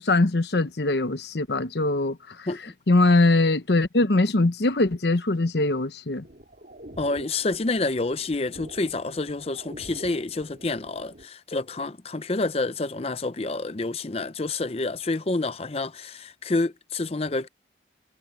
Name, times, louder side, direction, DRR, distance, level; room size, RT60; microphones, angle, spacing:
voice 1, 0.0-2.2 2.9-6.2, left 2 dB, 65° left, 1.0 m, -22 dB
sound 1, 6.2-11.3, right 1 dB, 50° right, 4.7 m, -46 dB
voice 2, 7.0-17.5, left 3 dB, 35° left, 0.6 m, -28 dB
head